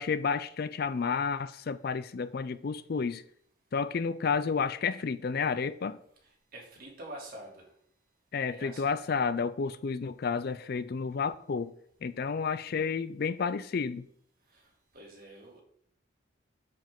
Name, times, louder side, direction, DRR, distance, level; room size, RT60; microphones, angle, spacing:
voice 1, 0.0-3.2 3.7-6.0 8.3-11.7 12.0-14.1, left 5 dB, 50° left, 0.4 m, -31 dB
voice 2, 6.2-7.7 8.5-9.3 14.5-14.7 14.9-15.6, right 1 dB, 45° right, 2.9 m, -47 dB
7.8 x 7.5 x 3.7 m
head